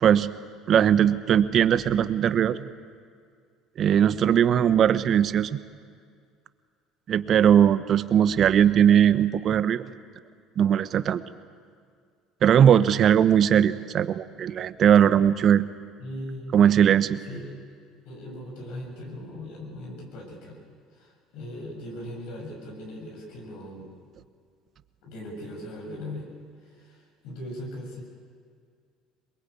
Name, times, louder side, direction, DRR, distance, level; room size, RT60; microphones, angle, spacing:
voice 1, 0.0-0.3 0.7-2.7 3.8-5.6 7.1-9.8 10.6-11.2 12.4-15.6 16.5-17.2, right 9 dB, 50° right, 13 dB, 1.0 m, -19 dB
voice 2, 16.0-16.6 17.2-17.5 18.0-20.6 20.9-23.9 25.0-26.3 26.6-28.0, left 1 dB, 75° left, -1 dB, 7.3 m, -39 dB
22.5 x 22.0 x 8.6 m, 2.1 s
supercardioid pair, 80°, 0 cm